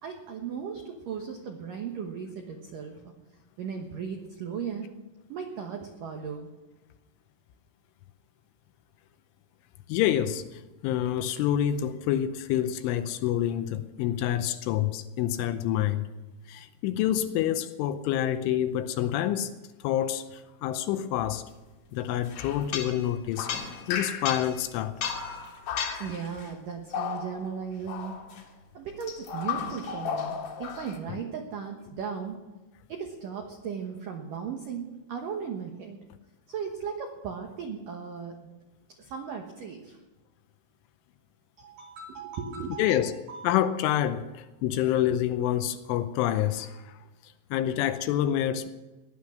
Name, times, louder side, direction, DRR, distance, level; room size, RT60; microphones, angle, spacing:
voice 1, 0.0-3.1 3.6-4.9 5.3-6.5 26.0-28.2 28.7-32.4 32.9-36.0 36.5-38.4 39.0-40.0 41.6-43.6 44.2-44.3 44.8-44.9, right 6 dB, 80° right, 1.9 m, -37 dB
voice 2, 9.9-10.4 10.8-16.1 16.5-19.5 19.8-21.4 21.9-23.5 23.9-24.9 31.1-31.2 42.8-43.1 43.4-46.8 47.5-48.7, left 11 dB, 80° left, 3.1 m, -27 dB
sound 1, 22.3-24.6 25.0-26.5 26.9-27.6 27.9-28.4 29.0-31.0, left 7 dB, 60° left, 2.8 m, -34 dB
18.5 x 11.0 x 6.4 m
omnidirectional pair, 5.8 m